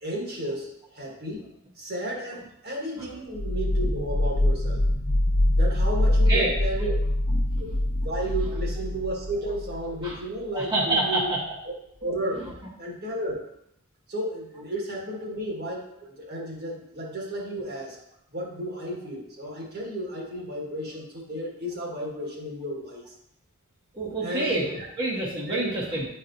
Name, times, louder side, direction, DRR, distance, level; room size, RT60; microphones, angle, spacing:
voice 1, 0.0-1.4 1.8-4.9 5.6-7.0 7.6-7.7 8.0-11.3 12.0-12.5 12.8-13.4 14.1-18.0 18.3-23.1 24.2-24.9 25.5-25.7, right 1 dB, 45° right, -2 dB, 1.5 m, -33 dB
sound 1, 3.3-10.1, left 1 dB, 65° left, 0.9 m, -24 dB
voice 2, 6.0-6.5 7.3-8.1 10.0-10.1 10.5-11.4 23.9-26.1, right 2 dB, 20° right, -6 dB, 1.0 m, -28 dB
9.0 x 4.3 x 2.6 m, 0.75 s
head